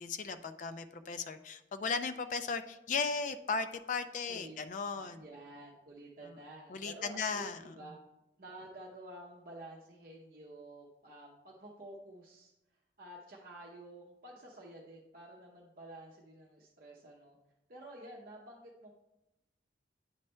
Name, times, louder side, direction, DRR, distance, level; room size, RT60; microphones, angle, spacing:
voice 1, 0.0-5.2 6.7-7.7, left 5 dB, 45° left, 11 dB, 0.3 m, -36 dB
voice 2, 4.3-4.6 4.9-8.0 8.4-12.5 13.0-17.4 17.7-18.9, right 1 dB, 50° right, -3 dB, 0.7 m, -51 dB
8.8 x 3.2 x 4.3 m, 0.92 s
head